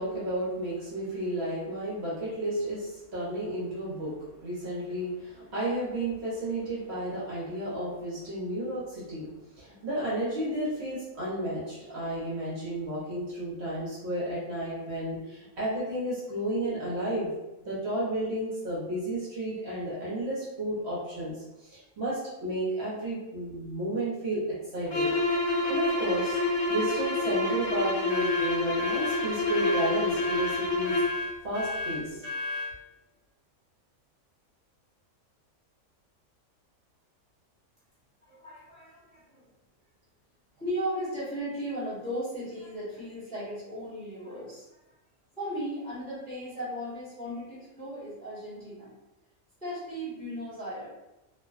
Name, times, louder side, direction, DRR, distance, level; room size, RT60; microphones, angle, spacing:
voice 1, 0.0-17.3 17.6-24.4 24.7-25.1 25.7-26.4 26.7-31.0 31.4-32.2, right 1 dB, 60° right, -8 dB, 1.0 m, -32 dB
sound 1, 24.9-31.2, left 2 dB, 60° left, 0.9 m, -28 dB
sound 2, 28.1-32.8, left 2 dB, 35° right, 0.6 m, -34 dB
voice 2, 38.2-39.4 40.6-44.8 45.3-48.9 49.6-50.9, equal, 5° left, -11 dB, 1.0 m, -36 dB
2.4 x 2.2 x 2.3 m, 0.99 s
omnidirectional pair, 1.4 m